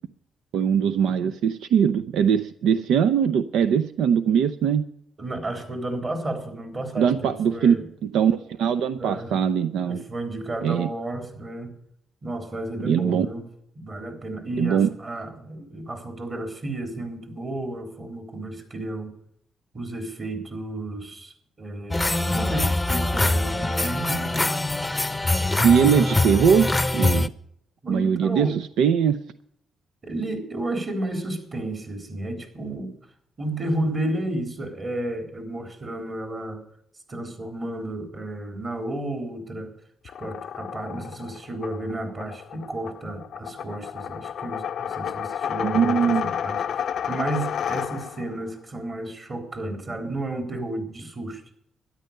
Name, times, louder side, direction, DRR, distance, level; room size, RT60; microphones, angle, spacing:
voice 1, 0.5-4.8 7.0-10.0 10.6-10.9 12.8-13.3 14.6-14.9 25.6-27.3 27.9-29.2 45.6-46.3, right 7 dB, 85° right, 11 dB, 0.6 m, -21 dB
voice 2, 5.2-7.9 9.0-9.3 9.8-11.7 12.2-13.4 13.8-19.2 19.7-24.6 27.8-28.6 30.0-32.9 33.4-36.6 37.1-39.7 40.0-51.4, right 1 dB, 35° right, 4 dB, 3.8 m, -32 dB
sound 1, 21.9-27.3, left 2 dB, 10° left, 0.7 m, -23 dB
sound 2, 40.0-48.4, left 8 dB, 65° left, 0.5 m, -31 dB
13.0 x 10.5 x 6.7 m, 0.71 s
cardioid pair, 95°, 0 cm